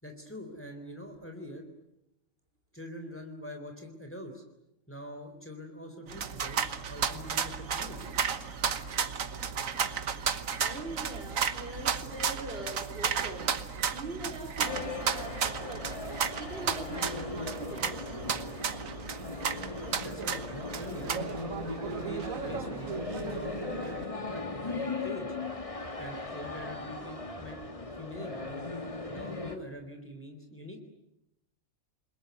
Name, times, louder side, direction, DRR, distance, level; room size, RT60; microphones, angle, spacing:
voice 1, 0.0-1.7 2.7-4.4 4.9-8.1 20.0-21.2 21.7-25.3 26.0-27.6 27.9-28.6 29.1-30.8, equal, 10° left, 3.7 m, -44 dB
sound 1, 6.1-24.0, right 7 dB, 75° right, 1.6 m, -34 dB
voice 2, 10.6-18.2, right 1 dB, 45° right, 4.9 m, -42 dB
sound 2, 14.6-29.6, left 2 dB, 25° left, 2.1 m, -38 dB
29.0 x 21.5 x 9.5 m
omnidirectional pair, 1.4 m